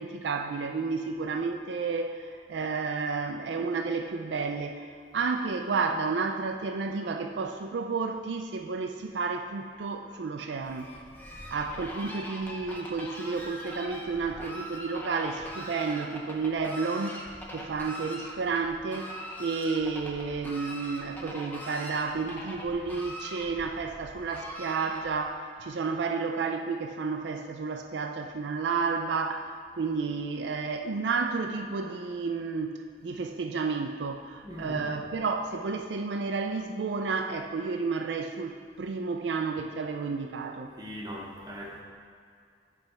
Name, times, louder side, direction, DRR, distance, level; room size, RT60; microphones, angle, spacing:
voice 1, 0.0-4.9 5.1-10.9 11.5-32.8 33.0-40.7, right 4 dB, 80° right, 4 dB, 0.4 m, -31 dB
Fowl, 10.6-25.3, equal, 10° left, 0.7 m, -42 dB
voice 2, 34.4-35.1 40.7-41.8, equal, 25° right, -3 dB, 1.0 m, -40 dB
8.7 x 3.4 x 5.7 m, 2.3 s
head